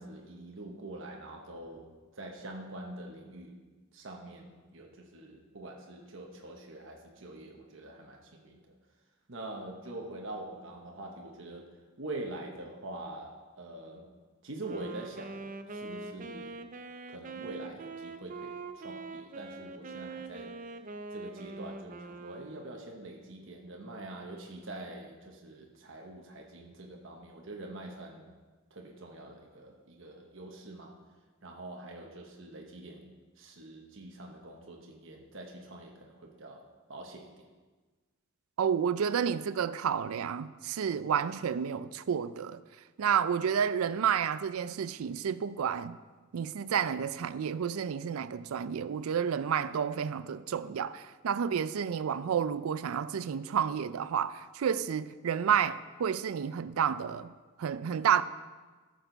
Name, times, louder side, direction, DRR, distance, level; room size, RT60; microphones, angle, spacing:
voice 1, 0.0-3.6 3.9-8.6 9.3-11.7 12.0-14.1 14.4-16.6 17.1-20.6 21.1-28.3 28.7-30.9 31.4-37.4, right 2 dB, 65° right, 1.1 m, -45 dB
Wind instrument woodwind instrument, 14.6-22.9, right 3 dB, 40° right, 0.5 m, -43 dB
voice 2, 38.6-42.6 43.0-46.0 46.3-57.3 57.6-58.2, right 7 dB, 90° right, 0.4 m, -30 dB
14.0 x 6.6 x 3.9 m
head